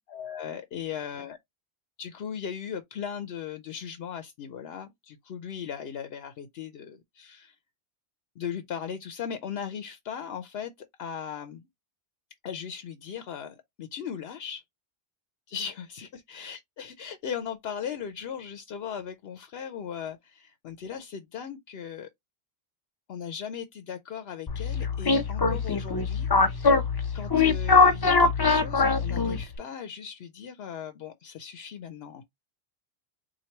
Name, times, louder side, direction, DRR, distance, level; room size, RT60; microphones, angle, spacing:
voice 1, 0.1-1.4 2.0-7.6 8.4-10.7 11.0-11.7 12.4-14.6 15.5-22.1 23.1-26.9 27.1-32.2, left 8 dB, 75° left, 0.8 m, -38 dB
sound 1, 24.5-29.6, left 4 dB, 35° left, 0.4 m, -23 dB
4.4 x 2.6 x 2.8 m
omnidirectional pair, 1.0 m